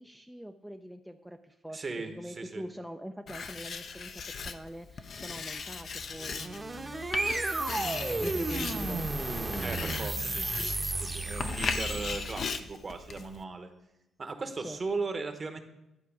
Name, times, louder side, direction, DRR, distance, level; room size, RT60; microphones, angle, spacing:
voice 1, 0.0-9.0 14.6-14.8, equal, 5° right, 4 dB, 0.5 m, -44 dB
voice 2, 1.7-2.6 9.6-10.5 10.9-13.7 14.2-15.6, right 3 dB, 35° right, 7 dB, 1.1 m, -37 dB
Writing, 3.3-13.4, left 5 dB, 50° left, 0.6 m, -38 dB
sound 1, 6.1-12.5, right 2 dB, 20° right, 0.9 m, -33 dB
11.0 x 4.6 x 5.9 m, 0.90 s
cardioid pair, 90°, 0 cm